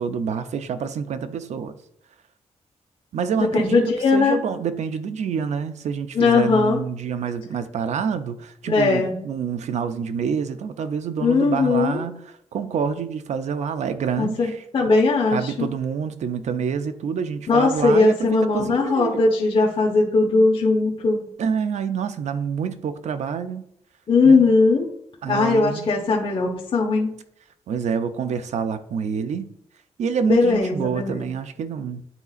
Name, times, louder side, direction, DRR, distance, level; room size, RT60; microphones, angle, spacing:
voice 1, 0.0-1.8 3.1-3.8 4.1-12.2 12.5-14.6 15.3-19.2 21.4-23.6 24.2-24.4 25.2-25.9 27.7-29.5 30.0-32.0, right 6 dB, 75° right, 0.6 m, -27 dB
voice 2, 3.5-4.4 6.1-6.8 8.7-9.1 11.2-12.0 14.2-14.5 14.7-15.7 17.5-21.2 24.1-24.9 25.3-27.1 30.2-31.2, left 3 dB, 45° left, 1.2 m, -19 dB
11.0 x 4.0 x 2.5 m
wide cardioid pair, 120°, 12 cm